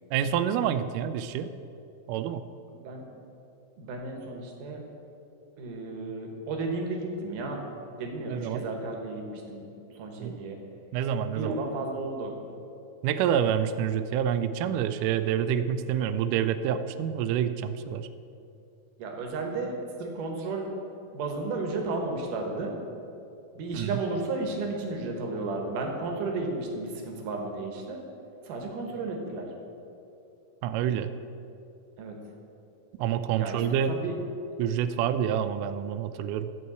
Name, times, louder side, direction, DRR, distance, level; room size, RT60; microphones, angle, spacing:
voice 1, 0.1-1.5 2.1-2.4 8.3-8.6 10.2-10.4 10.9-11.6 13.0-18.1 23.7-24.0 30.6-31.1 33.0-33.9 34.6-36.5, right 9 dB, 90° right, 11 dB, 1.8 m, -27 dB
voice 2, 2.7-3.0 3.8-4.8 5.6-7.6 8.0-9.6 10.0-10.6 11.3-12.3 19.0-20.7 21.1-22.7 23.6-28.0 28.5-29.5 32.0-32.1 33.4-34.2, right 3 dB, 65° right, 2 dB, 2.8 m, -33 dB
13.5 x 4.7 x 8.1 m, 2.7 s
omnidirectional pair, 4.2 m